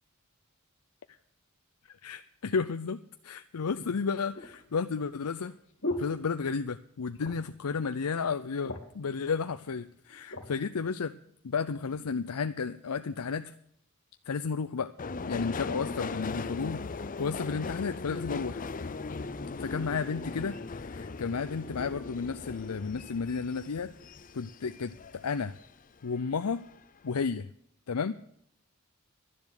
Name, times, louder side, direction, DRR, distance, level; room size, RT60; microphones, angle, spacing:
voice 1, 2.0-5.5 6.0-11.1 11.4-13.5 14.3-14.9 15.3-18.6 19.6-23.9 24.3-25.6 26.0-26.6 27.0-27.5 27.9-28.1, left 5 dB, 85° left, 10 dB, 0.6 m, -32 dB
sound 1, 2.8-2.9 3.7-6.9 7.1-7.6 8.0-8.1 8.4-9.1 9.8-10.5 11.1-11.3, left 1 dB, 60° left, 2.5 m, -39 dB
Subway metro underground, 15.0-25.7 26.1-26.8 27.1-27.2, left 4 dB, 40° left, 0.6 m, -39 dB
12.0 x 10.5 x 6.5 m, 0.70 s
head